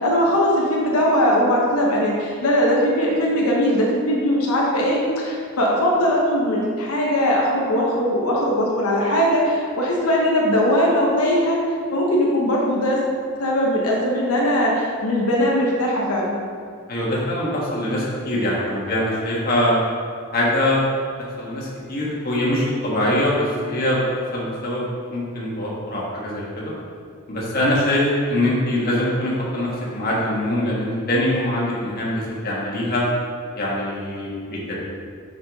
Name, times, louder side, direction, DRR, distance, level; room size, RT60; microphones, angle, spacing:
voice 1, 0.0-11.6 11.9-13.0 13.4-16.4, equal, 90° left, -3 dB, 1.1 m, -20 dB
voice 2, 16.9-19.8 20.3-20.8 21.4-24.0 24.3-24.8 25.1-26.7 27.3-33.0 33.5-34.8, left 1 dB, 45° left, -5 dB, 1.4 m, -23 dB
6.2 x 5.7 x 3.6 m, 2.2 s
head